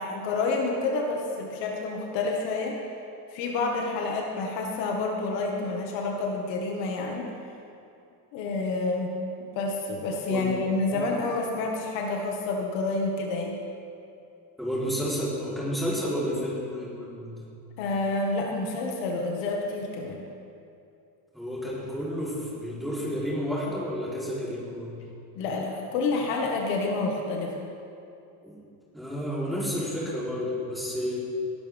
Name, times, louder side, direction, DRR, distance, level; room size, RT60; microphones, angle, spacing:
voice 1, 0.0-2.8 3.3-7.3 8.3-9.1 9.4-13.6 17.8-20.2 25.3-27.7, left 3 dB, 65° left, 0 dB, 1.9 m, -29 dB
voice 2, 14.6-17.5 21.3-25.0 28.4-28.5 28.9-31.2, equal, ahead, -8 dB, 3.9 m, -31 dB
18.0 x 12.5 x 3.6 m, 2.6 s
cardioid pair, 140°, 47 cm